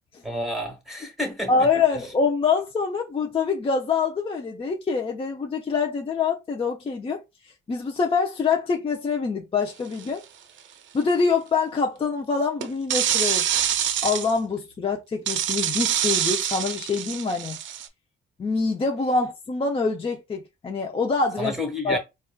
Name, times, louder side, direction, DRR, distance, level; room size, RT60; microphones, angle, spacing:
voice 1, 0.2-1.7 21.4-22.0, left 1 dB, ahead, 1.2 m, -30 dB
voice 2, 1.5-7.2 7.7-10.2 10.9-13.4 14.0-17.6 18.4-21.5 21.8-22.0, left 4 dB, 30° left, 0.5 m, -25 dB
sound 1, 10.0-10.2 12.6-14.3 15.3-17.9, right 10 dB, 70° right, 0.5 m, -25 dB
4.2 x 2.3 x 2.2 m
cardioid pair, 90°, 20 cm